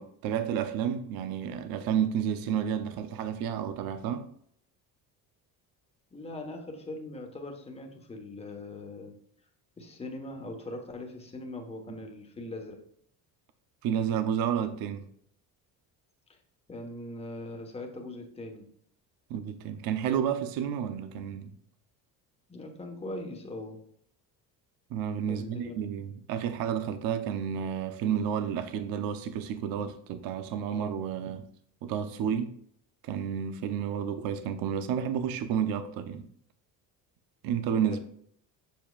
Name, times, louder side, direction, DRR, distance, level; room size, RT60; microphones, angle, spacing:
voice 1, 0.0-4.3 13.8-15.0 19.3-21.5 24.9-31.5 31.8-32.5 33.0-36.3 37.4-38.0, right 8 dB, 70° right, 0.8 m, -31 dB
voice 2, 6.1-9.1 9.8-12.8 16.3-16.4 16.7-18.7 22.5-23.8 25.3-25.7 37.9-38.0, left 2 dB, 15° left, 1.4 m, -41 dB
7.4 x 7.3 x 2.5 m
cardioid pair, 155°, 37 cm